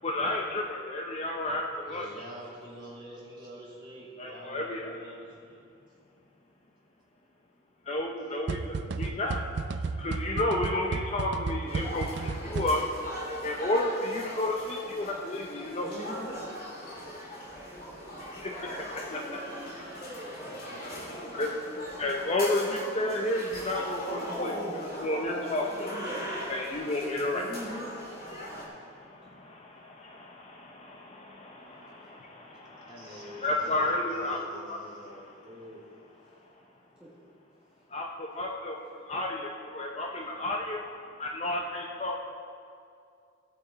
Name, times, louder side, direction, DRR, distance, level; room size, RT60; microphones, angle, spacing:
voice 1, 0.0-2.1 4.2-4.9 7.9-9.4 10.0-13.0 13.4-16.0 16.8-16.9 17.5-17.6 18.2-19.2 20.9-25.9 26.5-27.4 28.3-34.4 34.7-34.8 37.9-38.8 39.1-42.2, left 1 dB, 35° left, 0 dB, 0.7 m, -32 dB
voice 2, 1.8-5.7 19.0-20.6 32.9-35.8, equal, 25° right, -7 dB, 2.9 m, -46 dB
sound 1, 8.5-13.1, right 4 dB, 60° right, 0.4 m, -34 dB
sound 2, 11.7-28.7, equal, 50° left, 2.5 m, -39 dB
voice 3, 15.8-16.4 25.9-26.3 27.3-27.9 37.0-37.1, equal, 5° right, -9 dB, 1.4 m, -40 dB
16.5 x 8.6 x 4.1 m, 2.4 s
head